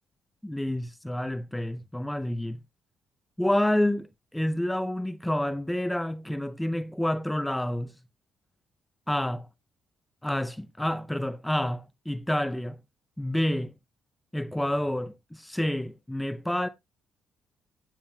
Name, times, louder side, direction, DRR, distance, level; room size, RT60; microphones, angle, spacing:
voice 1, 0.4-2.6 3.4-7.9 9.1-9.5 10.2-12.8 13.2-13.7 14.3-16.7, left 1 dB, 5° left, 0.5 m, -28 dB
16.0 x 7.2 x 2.2 m
cardioid pair, 90°, 0 cm